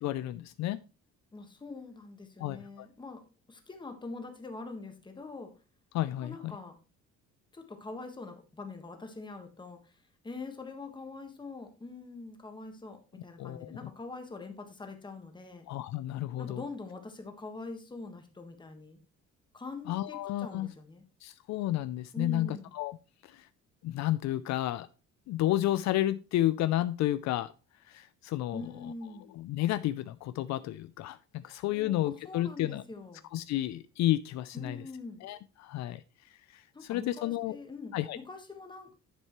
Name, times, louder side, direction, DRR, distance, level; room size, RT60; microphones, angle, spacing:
voice 1, 0.0-0.8 2.4-2.9 5.9-6.5 13.4-13.9 15.7-16.6 19.9-20.7 21.2-23.0 23.2-23.5 23.8-24.9 25.3-27.5 27.9-28.9 29.3-32.8 33.3-34.8 35.2-36.0 36.3-37.6 37.9-38.2, left 14 dB, 65° left, 14 dB, 0.5 m, -31 dB
voice 2, 1.3-3.2 3.5-5.5 6.2-6.8 7.5-9.9 10.2-15.6 16.4-19.0 19.5-21.0 22.1-22.7 28.5-29.3 31.7-33.2 34.5-35.2 36.7-38.9, left 3 dB, 15° left, 5 dB, 1.5 m, -44 dB
10.0 x 7.3 x 3.1 m, 0.32 s
cardioid pair, 145°, 29 cm